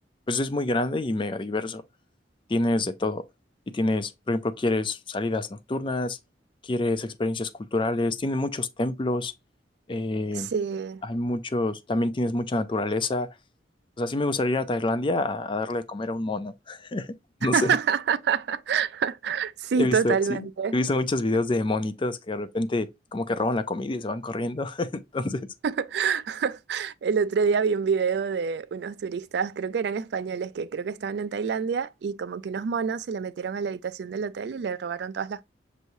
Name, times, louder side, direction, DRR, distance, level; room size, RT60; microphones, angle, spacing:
voice 1, 0.3-1.8 2.5-3.2 3.7-6.2 6.6-9.3 9.9-10.5 11.0-13.3 14.0-17.1 17.4-17.7 19.8-20.5 20.7-25.5, left 2 dB, 30° left, 0.4 m, -27 dB
voice 2, 10.3-11.0 17.4-20.7 25.6-35.4, right 6 dB, 65° right, 0.3 m, -27 dB
6.5 x 3.1 x 2.6 m
head